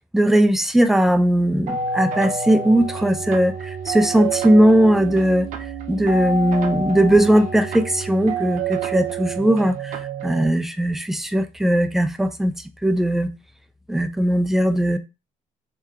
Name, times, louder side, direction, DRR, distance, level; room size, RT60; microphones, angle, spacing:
voice 1, 0.1-5.5 5.9-12.5 12.8-13.3 13.9-15.0, right 1 dB, ahead, 0.3 m, -18 dB
sound 1, 1.7-10.5, right 4 dB, 65° right, 0.6 m, -28 dB
3.2 x 2.8 x 3.5 m
cardioid pair, 135°, 14 cm